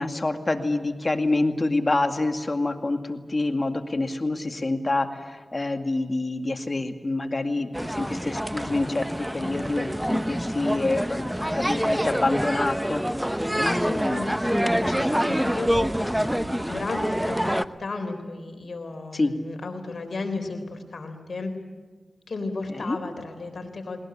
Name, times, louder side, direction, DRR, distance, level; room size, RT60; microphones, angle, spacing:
voice 1, 0.0-11.3 11.5-13.0 19.1-19.3 22.7-23.0, left 2 dB, 45° left, 6 dB, 2.2 m, -27 dB
sound 1, 7.7-17.6, equal, 5° right, 0.9 m, -26 dB
voice 2, 13.6-21.5 22.3-24.0, left 3 dB, 70° left, 5 dB, 3.9 m, -34 dB
20.0 x 20.0 x 9.9 m, 1.4 s
cardioid pair, 50°, 0 cm